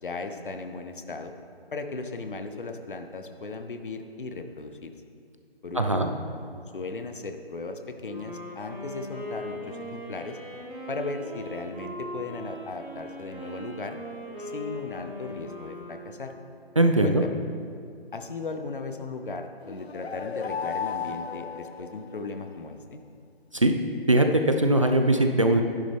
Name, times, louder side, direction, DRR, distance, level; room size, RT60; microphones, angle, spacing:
voice 1, 0.0-1.3 1.7-4.9 5.6-6.1 6.7-10.4 10.9-14.0 14.4-16.3 17.0-17.3 18.1-23.0, left 3 dB, 55° left, 7 dB, 0.9 m, -37 dB
voice 2, 5.7-6.1 16.8-17.2 23.5-23.7 24.1-25.6, right 1 dB, 30° right, 5 dB, 0.4 m, -21 dB
Wind instrument woodwind instrument, 8.0-16.7, equal, 5° left, 2.5 m, -40 dB
sound 1, 19.7-22.6, left 7 dB, 80° left, 0.6 m, -35 dB
12.0 x 10.5 x 3.5 m, 2.3 s
figure-of-eight pair, 155°, 31 cm